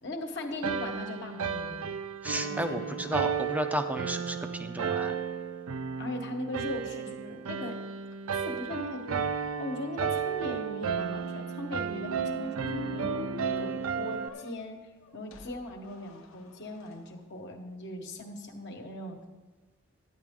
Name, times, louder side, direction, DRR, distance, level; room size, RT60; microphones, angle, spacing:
voice 1, 0.0-1.9 2.3-3.1 6.0-7.8 8.4-9.2 9.6-14.8 15.1-19.2, left 1 dB, 55° left, 2 dB, 1.2 m, -39 dB
sound 1, 0.6-14.3, right 6 dB, 80° right, 0.5 m, -33 dB
voice 2, 2.2-5.2, equal, 5° right, 7 dB, 0.6 m, -33 dB
sound 2, 11.0-16.9, left 2 dB, 80° left, 0.9 m, -44 dB
13.5 x 9.4 x 3.7 m, 1.2 s
head